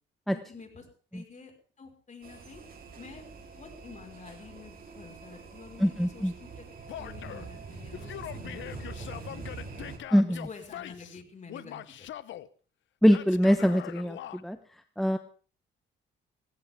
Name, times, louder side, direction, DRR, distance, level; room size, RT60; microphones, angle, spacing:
voice 1, 0.3-0.9 1.1-1.5 1.8-2.6 3.0-3.2 3.5-6.7 7.0-9.9 10.3-12.1, left 4 dB, 40° left, 3 dB, 5.2 m, -49 dB
sound 1, 2.2-10.0, right 4 dB, 45° right, 3.9 m, -44 dB
voice 2, 5.8-6.3 10.1-10.4 13.0-14.6 15.0-15.2, equal, ahead, 8 dB, 1.0 m, -23 dB
Male speech man speaking / Yell, 6.9-7.5 7.9-11.2 11.5-12.5 13.1-14.4, left 12 dB, 70° left, 0.9 m, -42 dB
18.5 x 16.5 x 3.7 m, 0.40 s
cardioid pair, 90°, 20 cm